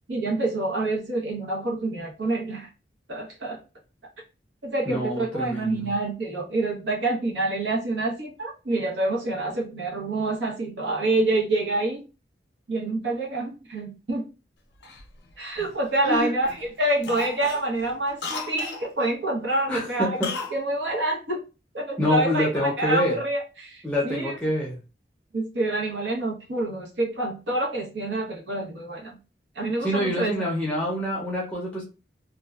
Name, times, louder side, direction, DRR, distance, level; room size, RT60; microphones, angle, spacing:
voice 1, 0.1-2.7 3.1-3.6 4.6-12.0 12.7-14.2 15.4-21.4 21.7-24.4 25.3-29.2 29.5-30.5, right 2 dB, 85° right, -1 dB, 0.8 m, -27 dB
voice 2, 4.9-5.9 16.0-16.3 19.7-20.3 22.0-23.2 23.8-24.8 29.8-31.8, left 1 dB, 5° left, -4 dB, 0.5 m, -26 dB
Cough, 14.8-16.1 16.4-16.7 17.0-18.9 20.2-20.6 20.9-21.0, left 3 dB, 85° left, 0.6 m, -35 dB
2.6 x 2.2 x 2.3 m, 0.31 s
head